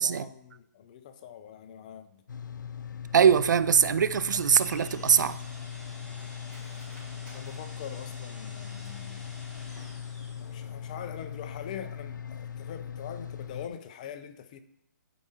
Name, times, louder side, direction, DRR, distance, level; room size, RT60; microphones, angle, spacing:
voice 1, 0.0-2.2 7.2-9.3 10.4-14.6, left 9 dB, 25° left, 0.4 m, -43 dB
sound 1, 2.3-13.7, left 8 dB, 85° left, 0.5 m, -40 dB
voice 2, 3.1-5.4, right 7 dB, 75° right, 0.4 m, -22 dB
sound 2, 4.3-10.8, left 1 dB, ahead, 1.1 m, -50 dB
Cutlery silverware, 6.2-9.2 9.6-10.3 10.6-10.7 11.1-11.4 11.8-11.9, right 1 dB, 15° right, 2.6 m, -58 dB
11.5 x 4.7 x 2.8 m
hypercardioid pair, 165°, 10 cm